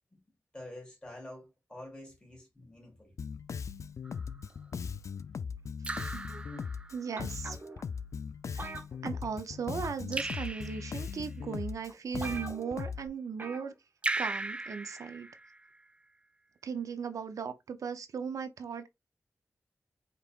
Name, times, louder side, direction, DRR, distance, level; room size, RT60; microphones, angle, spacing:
voice 1, 0.5-3.1, left 1 dB, 15° left, 2.9 m, -47 dB
Bass guitar, 3.2-13.1, left 6 dB, 65° left, 0.4 m, -39 dB
Raindrop / Drip, 4.0-4.5 5.8-7.2 10.1-11.2 14.0-15.8, right 2 dB, 20° right, 0.3 m, -37 dB
voice 2, 6.1-6.6 6.9-7.6 8.5-8.7 9.0-13.7 14.2-15.3 16.6-18.9, right 6 dB, 80° right, 0.6 m, -37 dB
sound 1, 7.2-7.8 8.6-9.5 9.8-10.1 11.0-11.1 11.6-11.7 11.9-12.0 12.2-12.9 13.4-13.7 14.0-14.1, right 3 dB, 40° right, 1.3 m, -43 dB
5.3 x 4.0 x 2.4 m
wide cardioid pair, 110°, 6 cm